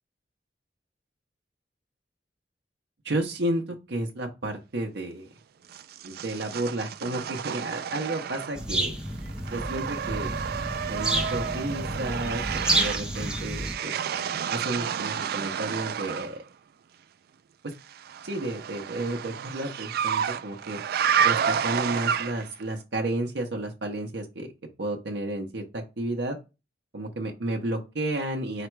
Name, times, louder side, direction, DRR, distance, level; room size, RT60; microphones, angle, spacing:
voice 1, 3.0-5.3 6.0-8.9 9.5-10.3 10.9-14.0 14.5-16.4 17.6-17.7 18.2-20.8 21.2-24.5 24.8-26.4 26.9-28.7, right 1 dB, 85° right, 1 dB, 0.8 m, -32 dB
sound 1, 5.7-8.8 9.1-16.3 17.9-22.6, right 8 dB, 60° right, 0.3 m, -30 dB
sound 2, 8.5-13.7, right 1 dB, 5° right, 0.6 m, -30 dB
4.9 x 2.2 x 4.5 m, 0.26 s
head